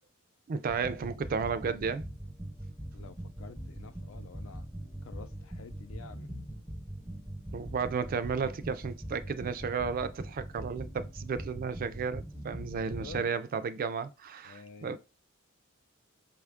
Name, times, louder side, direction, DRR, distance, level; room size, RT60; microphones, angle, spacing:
voice 1, 0.5-2.0 7.5-15.0, right 5 dB, 45° right, 0.3 m, -33 dB
sound 1, 0.7-13.3, right 1 dB, 5° left, 0.6 m, -42 dB
voice 2, 2.9-4.7 5.0-6.3 12.8-13.3 14.4-15.0, left 4 dB, 75° left, 0.4 m, -49 dB
4.9 x 2.4 x 3.5 m
head